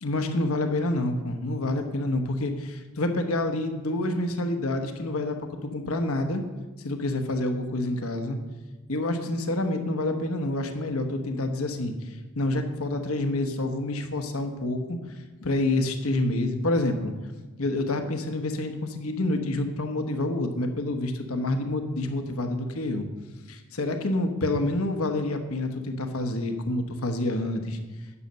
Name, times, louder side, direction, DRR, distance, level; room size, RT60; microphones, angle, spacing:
voice 1, 0.0-6.4 6.8-8.4 8.9-11.9 12.4-15.0 15.4-17.1 17.6-23.1 23.5-27.8, left 2 dB, 75° left, 6 dB, 1.1 m, -28 dB
9.8 x 6.5 x 6.6 m, 1.2 s
head